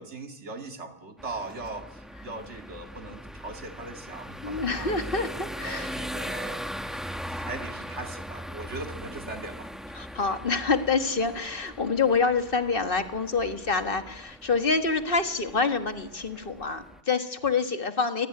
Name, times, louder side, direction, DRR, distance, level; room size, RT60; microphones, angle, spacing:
voice 1, 0.0-4.9 5.6-9.7, right 2 dB, 85° right, 5 dB, 2.5 m, -40 dB
sound 1, 1.2-17.0, equal, ahead, 0.9 m, -40 dB
voice 2, 4.4-6.0 9.9-18.3, left 4 dB, 50° left, 7 dB, 1.8 m, -27 dB
25.5 x 18.0 x 9.5 m, 0.95 s
omnidirectional pair, 1.2 m